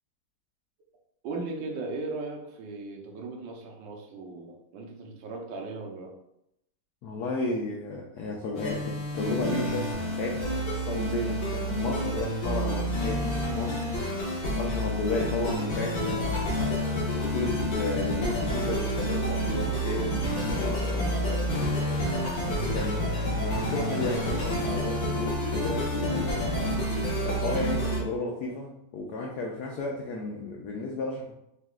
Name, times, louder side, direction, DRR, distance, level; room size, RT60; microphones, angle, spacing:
voice 1, 1.2-6.2 22.8-23.1 25.4-25.7 28.4-28.5, right 3 dB, 70° right, 1 dB, 1.3 m, -38 dB
voice 2, 7.0-13.9 14.6-16.9 17.2-21.6 22.4-26.7 27.2-31.3, left 2 dB, 80° left, 0 dB, 0.9 m, -33 dB
sound 1, 8.5-28.0, equal, 65° left, 2.0 m, -29 dB
4.7 x 3.3 x 2.4 m, 0.81 s
omnidirectional pair, 2.4 m